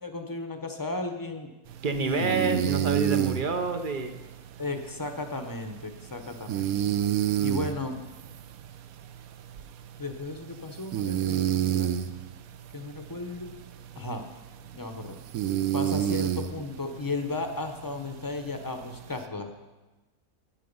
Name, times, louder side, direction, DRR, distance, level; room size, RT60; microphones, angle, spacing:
voice 1, 0.0-1.5 2.0-2.6 4.6-6.8 7.4-7.9 10.0-12.0 12.7-13.6 14.0-14.2 14.7-15.2 15.7-19.5, left 3 dB, 20° left, 6 dB, 0.6 m, -35 dB
sound 1, 1.7-19.2, right 11 dB, 70° right, 1.0 m, -31 dB
voice 2, 1.8-4.2, right 4 dB, 50° right, 8 dB, 0.6 m, -28 dB
11.0 x 9.0 x 5.4 m, 1.1 s
omnidirectional pair, 1.6 m